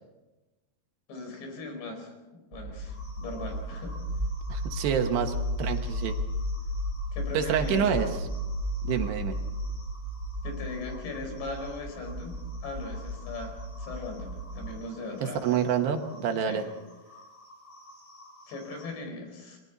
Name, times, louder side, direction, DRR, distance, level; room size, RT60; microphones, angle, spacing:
voice 1, 1.1-4.0 7.1-8.2 10.4-15.4 16.5-16.7 18.5-19.6, left 2 dB, 80° left, 3 dB, 6.9 m, -39 dB
sound 1, 2.5-14.7, equal, 35° right, 2.4 m, -34 dB
sound 2, 2.8-18.9, left 1 dB, 55° left, 8.4 m, -53 dB
voice 2, 4.5-6.1 7.3-8.1 8.8-9.3 15.4-16.6, right 8 dB, 75° right, 5 dB, 3.4 m, -27 dB
29.5 x 22.5 x 4.1 m, 1.1 s
omnidirectional pair, 5.0 m